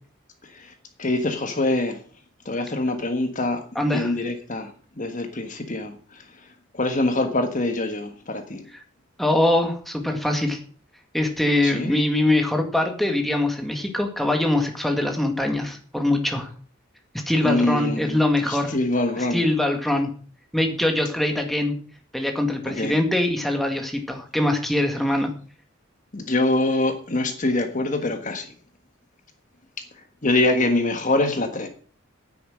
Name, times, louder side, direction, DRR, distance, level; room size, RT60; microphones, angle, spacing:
voice 1, 1.0-1.9 2.5-3.6 3.9-4.7 5.0-5.9 6.8-8.6 11.6-11.9 17.4-18.2 18.7-19.4 22.7-22.9 26.1-28.5 30.2-31.7, left 2 dB, 40° left, 7 dB, 1.4 m, -24 dB
voice 2, 3.8-4.2 8.7-8.8 9.2-10.6 11.1-16.5 17.3-18.8 19.2-20.1 20.5-21.7 22.1-25.3, left 1 dB, ahead, 3 dB, 1.9 m, -23 dB
9.6 x 9.6 x 6.4 m, 0.42 s
head